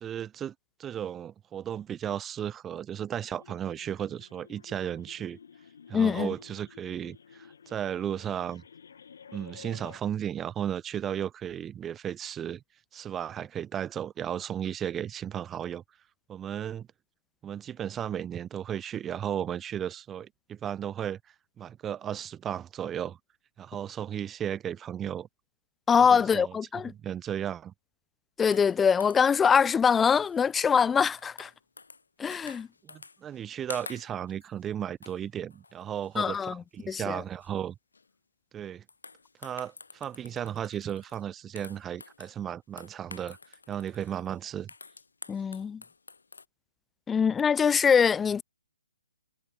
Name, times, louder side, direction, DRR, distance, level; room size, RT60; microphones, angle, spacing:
voice 1, 0.0-0.5 0.8-5.4 5.9-8.6 9.3-12.6 12.9-15.8 16.3-16.9 17.4-21.2 21.6-23.2 23.6-25.3 26.0-26.5 26.9-27.7 32.8-37.8 38.5-38.8 39.4-43.4 43.7-44.7, right 9 dB, 15° right, 1.3 m, -35 dB
sound 1, 3.1-10.0, left 7 dB, 60° left, 7.3 m, -52 dB
voice 2, 5.9-6.3 25.9-26.9 28.4-31.5 32.2-32.7 36.2-37.2 45.3-45.8 47.1-48.4, left 6 dB, 10° left, 0.3 m, -23 dB
sound 2, 28.5-29.5 29.9-30.4 30.7-32.1 32.3-33.4 33.7-34.7 35.0-35.2 35.5-36.4 36.8-37.1 37.4-37.5 37.9-38.1 38.9-41.3 41.6-42.4 42.8-46.5, left 4 dB, 75° left, 3.3 m, -49 dB
figure-of-eight pair, 140°, 0 cm